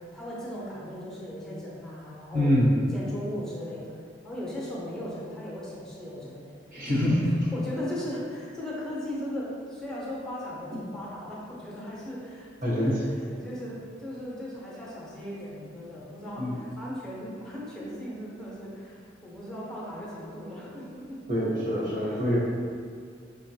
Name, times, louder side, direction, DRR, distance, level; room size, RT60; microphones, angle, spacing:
voice 1, 0.0-2.5 2.9-3.9 4.2-6.5 6.8-7.1 7.5-21.5 22.0-22.2, left 1 dB, 5° left, -7 dB, 0.7 m, -38 dB
voice 2, 2.3-2.7 6.7-7.3 12.6-13.0 16.4-16.5 21.3-22.4, equal, 50° right, -7 dB, 1.1 m, -25 dB
5.3 x 2.2 x 2.8 m, 2.1 s
head